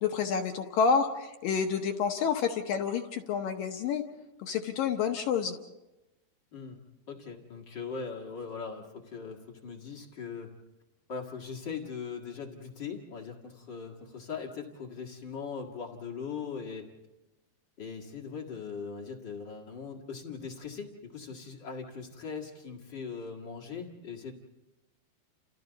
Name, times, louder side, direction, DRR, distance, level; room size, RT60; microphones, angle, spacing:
voice 1, 0.0-4.0 4.4-5.6, left 6 dB, 70° left, 4 dB, 2.3 m, -29 dB
voice 2, 7.1-10.5 11.1-16.9 17.8-24.3, left 5 dB, 45° left, 0 dB, 1.5 m, -40 dB
30.0 x 29.0 x 4.0 m, 1.0 s
omnidirectional pair, 4.8 m